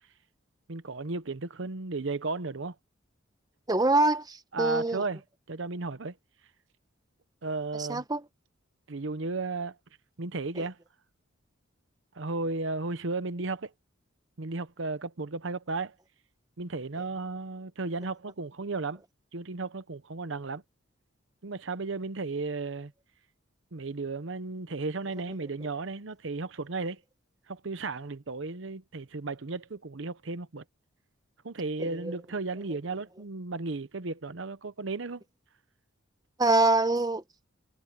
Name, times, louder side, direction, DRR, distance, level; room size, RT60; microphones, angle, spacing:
voice 1, 0.7-2.7 4.5-5.2 5.5-6.2 7.4-8.0 8.9-9.8 10.2-10.8 12.1-13.7 14.4-15.9 16.6-19.0 19.3-20.6 21.4-22.9 23.7-27.0 27.5-30.6 31.4-35.2, right 3 dB, 65° right, 0.8 m, -34 dB
voice 2, 3.7-5.0 7.8-8.2 31.8-32.1 36.4-37.2, right 2 dB, 20° right, 1.0 m, -25 dB
head